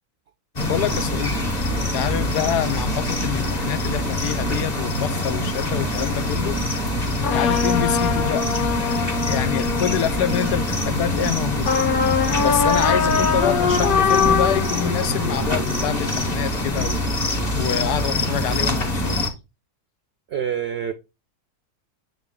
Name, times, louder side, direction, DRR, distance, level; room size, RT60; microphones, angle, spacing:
voice 1, 0.6-1.3 1.7-6.6 7.3-8.5 8.8-9.0 9.3-11.7 12.4-17.0 17.6-19.2, left 10 dB, 90° left, 1.2 m, -26 dB
sound 1, 0.6-19.3, left 1 dB, 30° left, 1.0 m, -24 dB
sound 2, 7.2-11.2 11.6-16.4, left 6 dB, 55° left, 0.6 m, -23 dB
voice 2, 20.3-20.9, right 9 dB, 70° right, 0.5 m, -26 dB
7.3 x 3.9 x 3.7 m
omnidirectional pair, 1.6 m